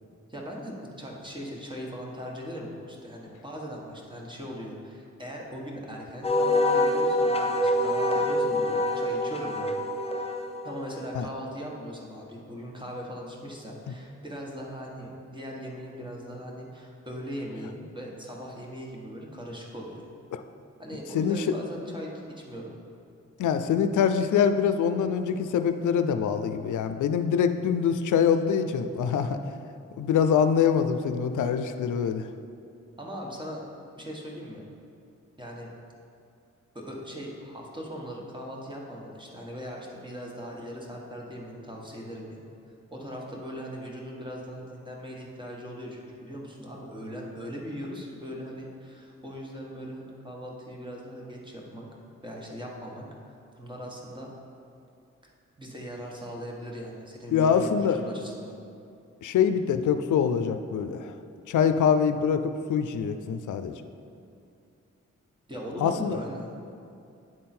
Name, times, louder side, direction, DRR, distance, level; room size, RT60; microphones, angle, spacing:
voice 1, 0.3-9.8 10.6-20.1 20.8-22.8 33.0-33.6 33.9-34.6 35.4-35.7 36.7-42.5 42.9-51.9 52.2-54.3 55.2-55.3 55.6-58.6 65.5-66.5, equal, 15° right, -2 dB, 1.5 m, -39 dB
Wind instrument woodwind instrument, 6.2-11.0, left 1 dB, 20° left, 0.7 m, -25 dB
voice 2, 23.4-29.4 30.0-32.2 57.3-58.0 59.2-61.1 61.5-63.7 65.8-66.2, left 7 dB, 80° left, 9 dB, 0.5 m, -24 dB
9.0 x 3.7 x 4.4 m, 2.5 s
cardioid pair, 50°, 30 cm